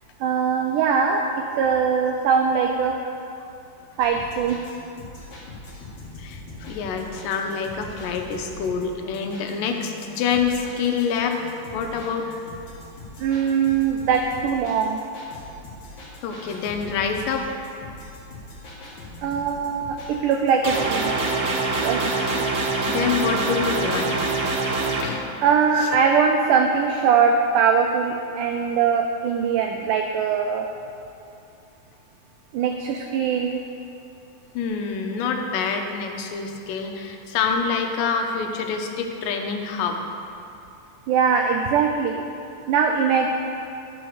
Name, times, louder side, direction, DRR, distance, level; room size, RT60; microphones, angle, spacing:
voice 1, 0.2-1.3 1.6-3.1 4.0-4.6 13.2-15.0 19.2-21.2 21.8-22.1 25.4-30.7 32.5-33.6 41.1-42.2 42.7-43.3, right 6 dB, 85° right, 3 dB, 1.8 m, -21 dB
sound 1, 4.0-20.8, left 2 dB, 50° left, 1.4 m, -42 dB
voice 2, 6.2-11.4 11.7-12.3 16.2-17.5 22.1-22.4 22.9-24.4 25.0-25.3 25.8-25.9 34.5-40.0, left 6 dB, 80° left, 4 dB, 2.2 m, -26 dB
sound 2, 20.6-25.0, right 3 dB, 65° right, 1.5 m, -24 dB
11.0 x 4.5 x 6.5 m, 2.6 s
omnidirectional pair, 4.1 m